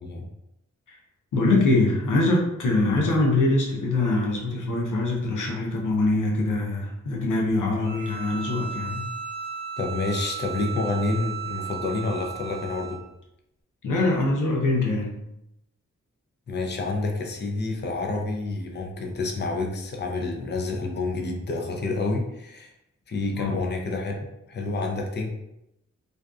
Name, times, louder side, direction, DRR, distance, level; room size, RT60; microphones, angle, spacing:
voice 1, 1.3-9.0 13.8-15.2 23.3-23.6, left 2 dB, 85° left, -1 dB, 0.6 m, -23 dB
Bowed string instrument, 7.8-13.1, right 7 dB, 30° right, 0.6 m, -35 dB
voice 2, 9.8-13.0 16.5-22.7 23.1-24.1 24.5-25.3, left 3 dB, 35° left, 1 dB, 0.5 m, -28 dB
2.5 x 2.2 x 2.3 m, 0.85 s
cardioid pair, 50°, 30 cm